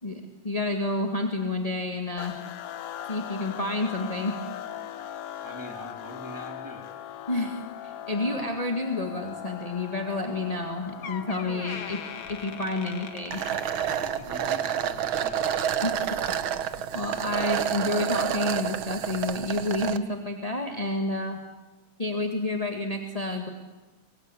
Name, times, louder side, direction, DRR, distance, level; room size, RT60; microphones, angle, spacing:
voice 1, 0.0-2.3 3.1-4.4 7.3-12.0 12.3-13.4 15.8-16.3 16.9-21.4 22.0-23.5, left 2 dB, 20° left, 3 dB, 1.2 m, -30 dB
sound 1, 2.2-15.6, left 11 dB, 70° left, 1.4 m, -41 dB
voice 2, 5.4-6.9 13.8-15.5, right 1 dB, 5° right, 3 dB, 2.9 m, -43 dB
Door, 10.6-10.7 11.0-14.5 14.9-15.2 15.9-16.0, left 7 dB, 50° left, 1.8 m, -41 dB
sound 2, 13.3-20.0, right 9 dB, 90° right, 1.1 m, -29 dB
24.0 x 23.0 x 8.3 m, 1.1 s
omnidirectional pair, 3.8 m